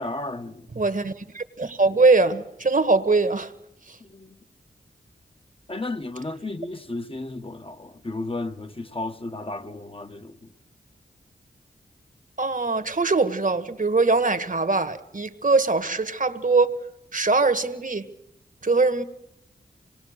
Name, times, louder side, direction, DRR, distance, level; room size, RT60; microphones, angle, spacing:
voice 1, 0.0-0.7 4.0-4.4 5.7-10.5, left 2 dB, 30° left, 1.2 m, -33 dB
voice 2, 0.7-3.5 3.9-4.0 12.4-16.8 17.1-18.1 18.6-19.0, right 3 dB, 45° right, 1.5 m, -22 dB
25.5 x 20.0 x 6.6 m
cardioid pair, 40°, 19 cm